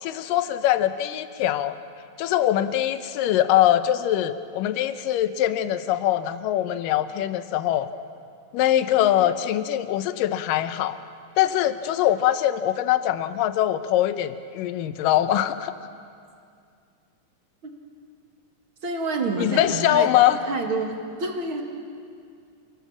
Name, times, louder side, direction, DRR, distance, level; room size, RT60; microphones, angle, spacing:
voice 1, 0.0-1.8 2.2-7.9 8.5-11.0 11.4-15.7 19.4-20.4, left 12 dB, 85° left, 11 dB, 2.5 m, -22 dB
voice 2, 18.8-20.1 20.5-20.9 21.2-21.6, right 3 dB, 40° right, 2 dB, 2.6 m, -27 dB
29.5 x 17.5 x 7.3 m, 2.4 s
omnidirectional pair, 3.8 m